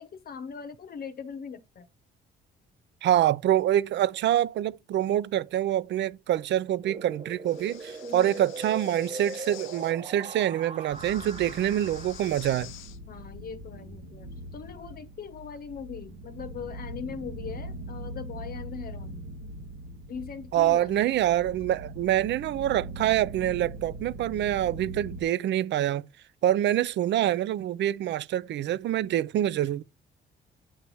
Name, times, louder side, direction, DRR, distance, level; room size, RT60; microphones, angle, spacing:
voice 1, 0.0-1.9 8.0-8.4 13.1-19.3 20.1-21.2, left 6 dB, 50° left, 0.8 m, -40 dB
voice 2, 3.0-12.7 20.5-26.1 26.4-29.8, right 12 dB, 65° right, 0.4 m, -26 dB
sound 1, 6.8-12.7, right 3 dB, 30° right, 1.0 m, -40 dB
Breathing, 7.4-9.9 10.9-13.0, left 13 dB, 90° left, 0.6 m, -48 dB
sound 2, 10.9-25.2, right 1 dB, 85° right, 1.3 m, -41 dB
8.7 x 3.0 x 5.4 m
cardioid pair, 90°, 20 cm